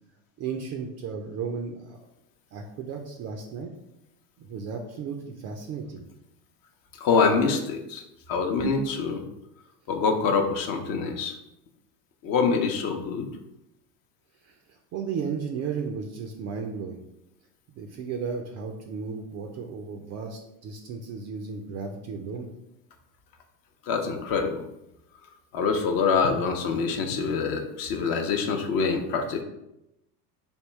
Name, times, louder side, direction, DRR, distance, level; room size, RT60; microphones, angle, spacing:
voice 1, 0.4-2.0 2.5-3.7 4.4-6.0 8.6-8.7 14.9-17.0 17.8-22.5, right 5 dB, 35° right, 2 dB, 0.4 m, -34 dB
voice 2, 6.9-9.2 9.9-11.4 12.2-13.3 23.9-24.6 25.5-29.4, left 5 dB, 45° left, 4 dB, 0.7 m, -25 dB
3.5 x 2.3 x 4.4 m, 0.87 s
hypercardioid pair, 90°, 48 cm